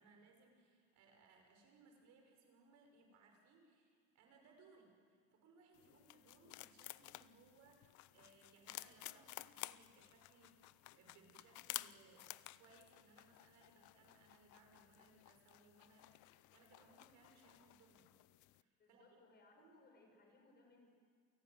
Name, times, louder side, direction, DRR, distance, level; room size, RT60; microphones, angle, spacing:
voice 1, 0.0-18.1 18.6-19.1 19.6-19.8, right 3 dB, 70° right, 3 dB, 5.8 m, -67 dB
sound 1, 5.7-18.6, left 18 dB, 75° left, 0.7 m, -54 dB
voice 2, 18.8-20.9, left 3 dB, 35° left, 2 dB, 6.1 m, -67 dB
28.5 x 17.5 x 9.5 m, 2.1 s
cardioid pair, 165°, 30 cm